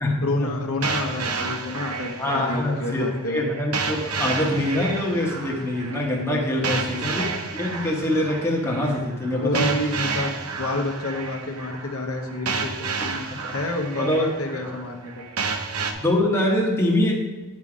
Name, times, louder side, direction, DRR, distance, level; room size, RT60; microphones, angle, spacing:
voice 1, 0.2-3.4 6.5-7.2 9.4-15.5, left 2 dB, 75° left, 3 dB, 0.9 m, -29 dB
sound 1, 0.8-15.9, right 4 dB, 85° right, 0.8 m, -31 dB
voice 2, 2.2-7.3 7.5-9.7 13.4-13.5 14.0-14.3 16.0-17.1, left 1 dB, 10° left, -2 dB, 1.1 m, -24 dB
8.7 x 5.5 x 4.9 m, 1.2 s
head